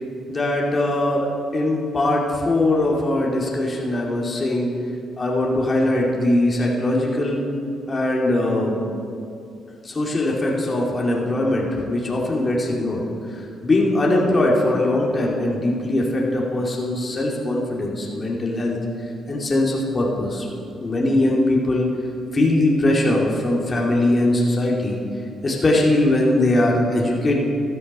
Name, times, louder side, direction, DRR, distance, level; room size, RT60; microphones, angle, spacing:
voice 1, 0.3-4.7 5.2-7.4 7.9-8.8 9.8-13.0 13.6-18.8 19.3-20.5 20.8-21.9 22.3-25.0 25.4-27.4, left 1 dB, 30° left, -2 dB, 2.5 m, -21 dB
13.0 x 13.0 x 5.5 m, 2.5 s
cardioid pair, 90°, 0 cm